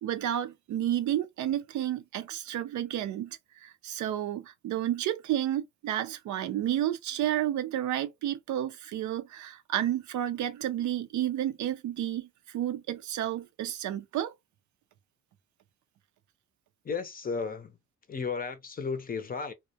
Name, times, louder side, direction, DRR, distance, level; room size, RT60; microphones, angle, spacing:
voice 1, 0.0-14.3, right 12 dB, 70° right, 0.5 m, -31 dB
voice 2, 16.8-17.8 18.1-19.5, left 5 dB, 30° left, 0.6 m, -34 dB
2.2 x 2.1 x 2.7 m
cardioid pair, 90°, 30 cm